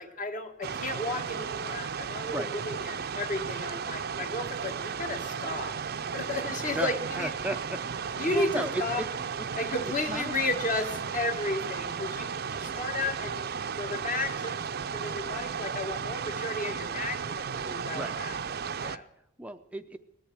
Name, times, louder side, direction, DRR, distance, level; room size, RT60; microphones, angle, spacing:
voice 1, 0.0-5.8 6.1-7.3 8.2-9.0 9.6-13.5 13.8-14.6 14.9-18.4 18.8-19.1, left 2 dB, 45° left, 5 dB, 1.7 m, -33 dB
sound 1, 0.6-19.0, right 6 dB, 55° right, 0.6 m, -34 dB
voice 2, 6.7-9.1 9.4-9.5 10.1-10.3 17.9-18.2 19.4-20.0, right 1 dB, 5° right, 7 dB, 0.5 m, -35 dB
18.0 x 10.0 x 7.5 m, 0.83 s
head